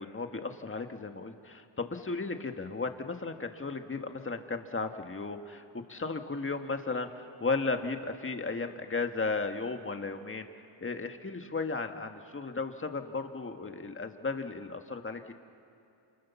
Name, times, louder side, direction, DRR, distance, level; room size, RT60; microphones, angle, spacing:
voice 1, 0.0-10.5 10.8-15.3, left 3 dB, 25° left, 5 dB, 1.7 m, -35 dB
29.0 x 28.5 x 7.1 m, 2.6 s
wide cardioid pair, 115°, 47 cm